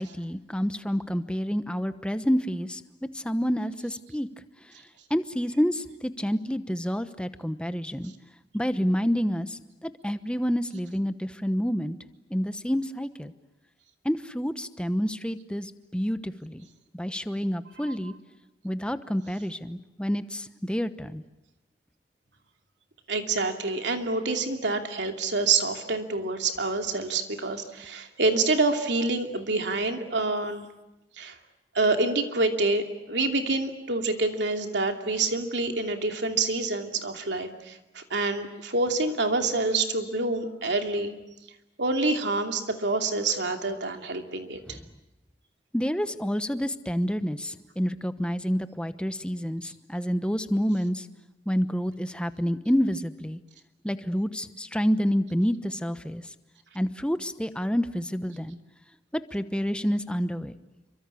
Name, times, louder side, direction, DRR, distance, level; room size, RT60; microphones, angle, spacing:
voice 1, 0.0-4.3 5.1-8.1 8.5-12.0 12.3-13.3 14.0-16.7 16.9-18.1 18.6-21.2 44.7-44.8 45.7-51.1 51.5-53.4 53.8-56.3 56.7-58.6 59.1-60.5, equal, 5° left, 11 dB, 1.0 m, -28 dB
voice 2, 23.1-30.7 31.2-31.3 31.7-41.1 41.8-44.8, right 3 dB, 80° right, 4 dB, 2.8 m, -27 dB
27.5 x 24.5 x 8.5 m, 0.96 s
head